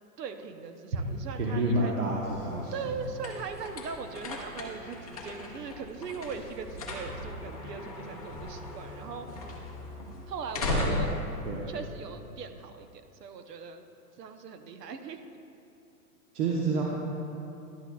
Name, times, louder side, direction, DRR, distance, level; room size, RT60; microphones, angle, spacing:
voice 1, 0.2-2.0 2.7-9.3 10.3-11.1 11.7-13.8 14.2-15.2, right 5 dB, 85° right, 7 dB, 0.9 m, -40 dB
voice 2, 1.3-2.9 10.7-10.9 11.4-11.7 16.3-16.8, right 2 dB, 70° right, -4 dB, 1.2 m, -29 dB
sound 1, 1.9-12.6, left 2 dB, 25° left, 0.6 m, -38 dB
11.5 x 8.3 x 2.3 m, 2.7 s
hypercardioid pair, 180°, 47 cm